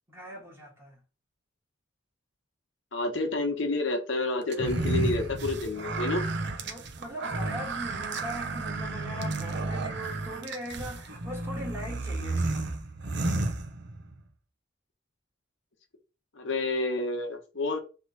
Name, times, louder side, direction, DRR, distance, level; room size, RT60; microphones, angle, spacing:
voice 1, 0.1-1.0 6.6-12.7, equal, 15° right, 1.7 m, -40 dB
voice 2, 2.9-6.2 16.3-17.8, left 2 dB, 80° left, 1.1 m, -29 dB
sound 1, 4.5-14.2, right 2 dB, 65° right, 0.8 m, -32 dB
3.6 x 3.1 x 4.1 m
head